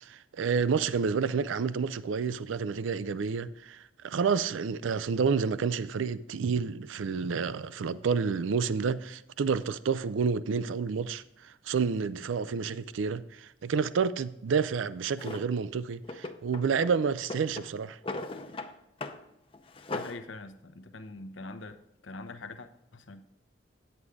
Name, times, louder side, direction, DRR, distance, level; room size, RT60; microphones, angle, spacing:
voice 1, 0.0-18.0, right 5 dB, 85° right, 0.4 m, -29 dB
Drawer open or close, 15.2-15.5 16.0-16.9 17.2-18.7 19.0-19.2 19.5-20.2, left 2 dB, 30° left, 0.6 m, -38 dB
voice 2, 19.9-21.8 22.0-23.2, left 3 dB, 80° left, 0.8 m, -43 dB
9.6 x 8.1 x 3.6 m
head